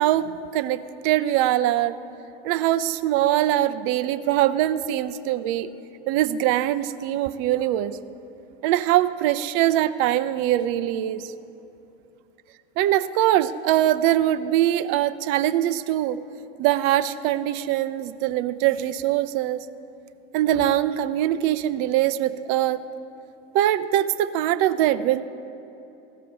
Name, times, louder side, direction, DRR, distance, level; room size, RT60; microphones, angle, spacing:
voice 1, 0.0-1.9 2.4-5.7 6.1-8.0 8.6-11.3 12.8-16.2 16.6-19.6 20.3-22.8 23.5-25.2, right 13 dB, 40° right, 14 dB, 0.5 m, -22 dB
15.0 x 6.7 x 6.2 m, 2.9 s
figure-of-eight pair, 80°, 34 cm